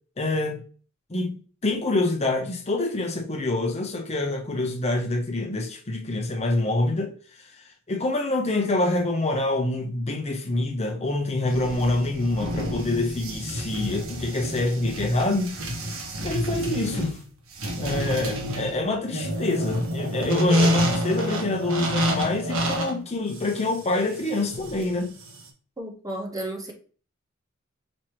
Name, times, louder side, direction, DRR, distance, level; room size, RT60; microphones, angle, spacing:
voice 1, 0.2-0.6 1.1-7.1 7.9-15.6 16.2-17.2 17.8-25.1, left 2 dB, 30° left, 0.7 m, -26 dB
sound 1, 11.5-25.5, equal, 85° right, 1.0 m, -28 dB
voice 2, 25.8-26.7, right 1 dB, 20° right, 0.8 m, -33 dB
5.2 x 2.9 x 3.0 m
head